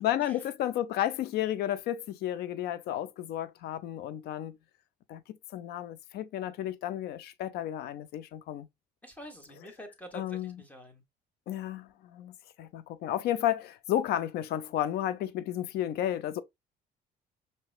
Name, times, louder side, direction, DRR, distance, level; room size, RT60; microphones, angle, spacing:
voice 1, 0.0-4.6 5.1-5.2 5.5-8.7 10.1-10.6 11.5-16.4, left 12 dB, 70° left, 0.5 m, -32 dB
voice 2, 9.0-11.0, equal, 10° left, 1.3 m, -47 dB
5.4 x 2.9 x 2.3 m
cardioid pair, 110°, 17 cm